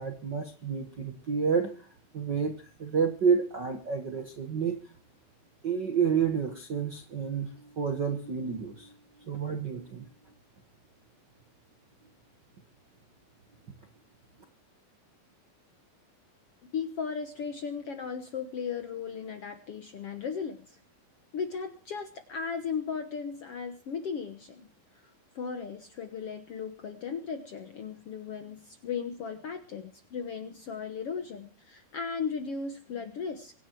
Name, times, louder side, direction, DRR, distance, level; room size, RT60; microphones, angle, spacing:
voice 1, 0.0-1.9 2.1-4.8 5.6-8.9 9.3-10.1, right 6 dB, 50° right, 6 dB, 1.3 m, -29 dB
voice 2, 16.7-20.8 21.3-24.7 24.9-25.1 25.3-33.5, left 6 dB, 60° left, 8 dB, 1.6 m, -36 dB
24.5 x 10.5 x 4.6 m, 0.37 s
omnidirectional pair, 4.2 m